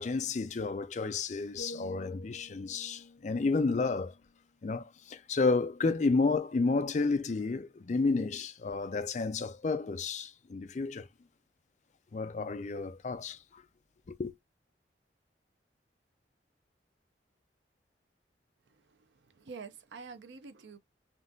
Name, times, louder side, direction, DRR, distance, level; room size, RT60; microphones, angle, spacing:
voice 1, 0.0-4.1 4.6-11.1 12.1-13.6 14.1-14.3, left 3 dB, 40° left, 0.4 m, -31 dB
sound 1, 1.6-5.6 5.9-6.2, left 1 dB, 80° left, 0.7 m, -50 dB
voice 2, 18.7-20.8, right 5 dB, 80° right, 0.5 m, -48 dB
3.7 x 2.4 x 2.5 m
head